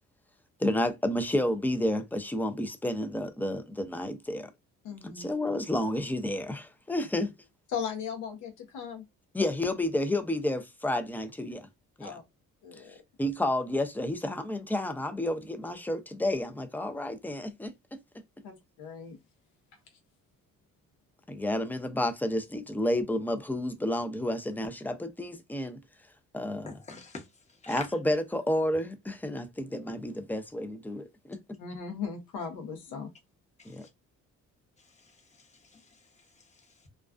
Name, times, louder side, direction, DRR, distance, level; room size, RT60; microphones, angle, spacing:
voice 1, 0.6-4.5 5.0-7.3 9.3-11.7 12.0-12.2 12.8-18.0 21.3-25.8 26.3-26.7 27.7-31.4 33.6-33.9, left 1 dB, 5° left, 0.4 m, -31 dB
voice 2, 4.8-5.3 7.7-9.0 12.0-12.2 12.6-13.0 18.4-19.2 31.6-33.1, left 6 dB, 90° left, 0.7 m, -37 dB
voice 3, 26.7-27.9 33.6-33.9 34.8-36.9, left 4 dB, 20° left, 0.8 m, -47 dB
2.3 x 2.3 x 2.3 m
cardioid pair, 90°, 30 cm